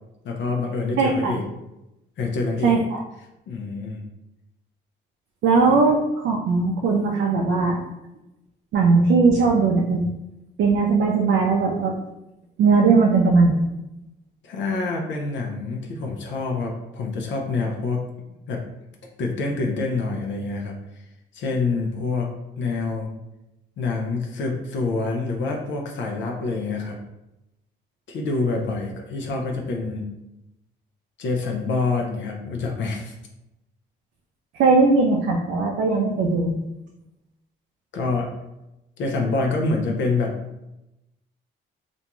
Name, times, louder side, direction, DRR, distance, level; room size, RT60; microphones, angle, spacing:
voice 1, 0.2-1.4 2.2-2.8 3.5-4.0 5.7-5.8 14.4-18.0 18.5-18.6 19.2-20.8 21.3-23.1 23.8-27.0 28.1-30.1 31.2-33.1 37.9-38.3 39.0-40.4, left 3 dB, 70° left, 1 dB, 0.5 m, -26 dB
voice 2, 1.0-1.4 2.6-3.0 5.4-7.8 8.7-10.1 10.6-12.0 12.6-13.7 34.5-36.5, right 4 dB, 70° right, 0 dB, 0.4 m, -19 dB
2.5 x 2.2 x 2.9 m, 0.92 s
cardioid pair, 90°, 20 cm